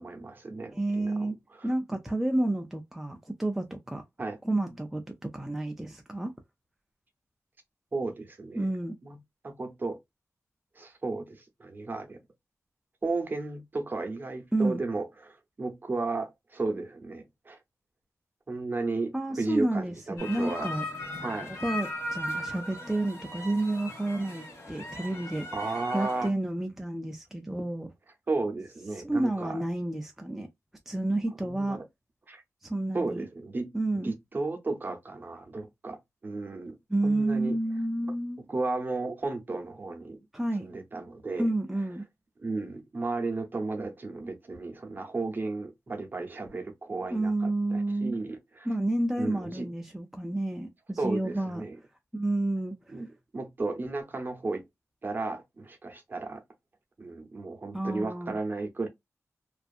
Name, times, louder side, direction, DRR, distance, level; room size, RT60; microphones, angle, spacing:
voice 1, 0.0-1.7 4.2-4.4 7.9-8.7 9.0-9.2 9.4-10.0 10.7-12.2 13.0-17.6 18.5-20.7 21.2-21.5 25.5-26.3 28.3-29.6 31.4-31.8 32.3-32.4 32.9-33.7 34.0-36.8 37.0-37.6 38.5-40.2 40.6-41.5 42.4-48.7 49.2-49.7 51.0-51.8 52.9-53.1 53.3-54.7 55.0-56.4 57.0-58.9, right 3 dB, 35° right, 0.7 m, -34 dB
voice 2, 0.7-1.3 1.6-4.0 4.4-6.3 8.6-8.9 14.5-14.8 19.1-20.8 21.5-25.5 25.9-27.9 29.0-30.5 30.9-31.8 32.6-33.3 33.7-34.1 36.9-38.4 40.3-40.6 41.4-42.0 47.1-48.1 48.7-51.6 52.1-52.9 57.7-58.4, right 1 dB, 5° right, 0.3 m, -30 dB
sound 1, 20.2-26.3, left 1 dB, 55° left, 1.3 m, -38 dB
2.6 x 2.4 x 2.3 m
wide cardioid pair, 130°, 6 cm